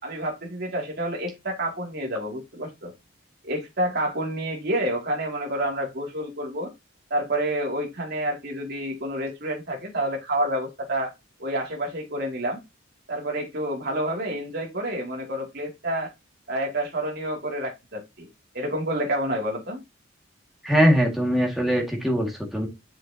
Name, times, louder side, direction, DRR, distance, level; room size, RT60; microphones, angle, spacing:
voice 1, 0.0-2.9 3.4-6.7 7.1-11.1 11.4-12.6 13.1-16.1 16.5-18.3 18.5-19.8, right 1 dB, 55° right, 2.7 m, -29 dB
voice 2, 20.6-22.7, equal, ahead, 2.1 m, -21 dB
7.4 x 6.5 x 2.9 m
head